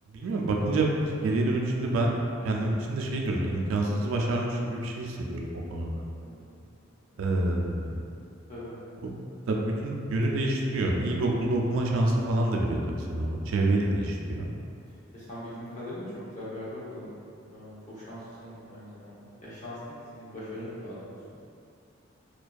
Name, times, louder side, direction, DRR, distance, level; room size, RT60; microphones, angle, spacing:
voice 1, 0.1-6.0 7.2-7.9 9.0-9.1 9.5-14.5, right 2 dB, 85° right, -1 dB, 0.3 m, -27 dB
voice 2, 6.2-6.6 7.1-7.5 8.5-8.8 13.9-14.1 15.1-17.1 17.5-21.2, left 1 dB, 35° left, -10 dB, 0.7 m, -41 dB
2.5 x 2.2 x 2.3 m, 2.5 s
head